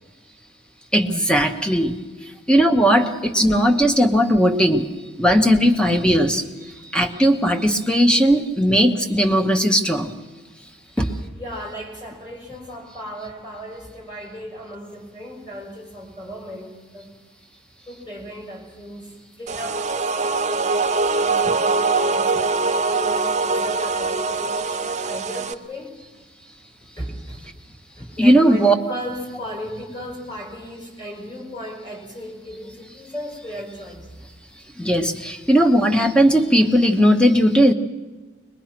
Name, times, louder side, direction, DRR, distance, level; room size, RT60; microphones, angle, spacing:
voice 1, 0.9-2.0 2.5-4.9 5.2-6.4 6.9-10.1 11.0-11.1 28.2-28.7 34.8-37.7, equal, 5° left, 6 dB, 1.1 m, -17 dB
voice 2, 11.0-17.1 17.9-25.9 27.0-27.6 28.0-34.1, equal, 20° left, -1 dB, 4.9 m, -36 dB
sound 1, 19.5-25.5, right 4 dB, 35° right, 0.6 m, -22 dB
22.0 x 21.5 x 6.0 m, 1.3 s
head